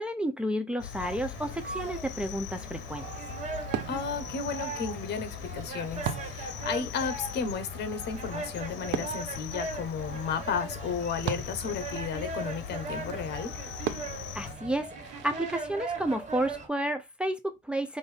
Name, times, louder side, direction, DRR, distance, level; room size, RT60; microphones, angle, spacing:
voice 1, 0.0-3.0 14.3-18.0, right 1 dB, 5° right, 0.5 m, -31 dB
Cricket, 0.8-14.5, left 9 dB, 90° left, 0.8 m, -41 dB
sound 1, 1.0-16.7, right 3 dB, 40° right, 1.5 m, -40 dB
Fireworks, 1.4-15.6, right 9 dB, 80° right, 0.8 m, -41 dB
voice 2, 3.9-13.5, left 6 dB, 65° left, 1.0 m, -33 dB
5.4 x 2.6 x 3.3 m
cardioid pair, 145°, 19 cm